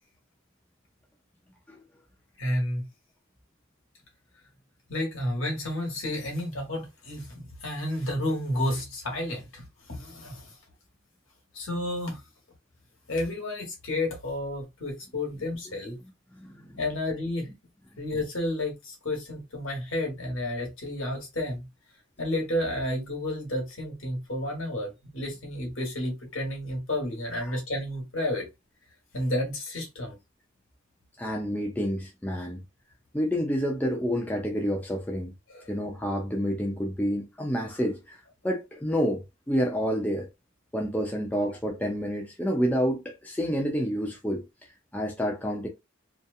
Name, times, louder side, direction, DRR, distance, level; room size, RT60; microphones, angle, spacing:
voice 1, 2.4-2.8 4.9-10.5 11.5-12.2 13.1-16.0 16.8-17.5 18.0-21.6 22.2-28.4 29.1-30.2 35.5-35.7, left 1 dB, 65° left, 1.2 m, -31 dB
voice 2, 16.4-16.8 27.4-27.5 31.2-32.6 33.1-35.3 35.7-40.3 40.7-44.5 44.9-45.7, equal, 5° left, 0.3 m, -29 dB
2.8 x 2.3 x 2.3 m
head